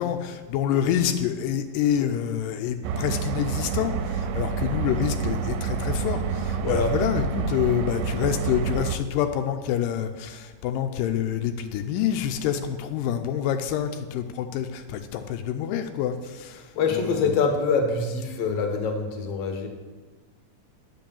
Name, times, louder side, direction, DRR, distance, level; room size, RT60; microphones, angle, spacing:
voice 1, 0.0-17.2, left 9 dB, 85° left, 6 dB, 2.2 m, -27 dB
sound 1, 2.8-9.0, right 6 dB, 90° right, 2.3 m, -28 dB
voice 2, 6.6-6.9 16.6-19.7, left 4 dB, 60° left, 4 dB, 1.8 m, -25 dB
9.3 x 5.3 x 7.2 m, 1.3 s
omnidirectional pair, 3.9 m